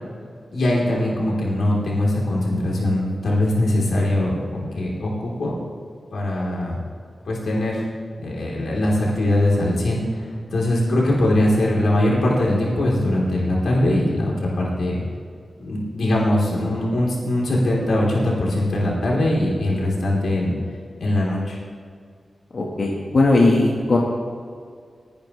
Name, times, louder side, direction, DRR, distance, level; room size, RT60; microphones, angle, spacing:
voice 1, 0.5-5.5 6.1-6.8 7.3-7.8 8.2-15.0 15.6-20.5 21.0-21.6, left 1 dB, 90° left, -4 dB, 3.7 m, -21 dB
voice 2, 22.5-24.0, left 2 dB, 55° left, -3 dB, 1.6 m, -18 dB
20.5 x 10.5 x 3.3 m, 2.2 s
wide cardioid pair, 125°, 0 cm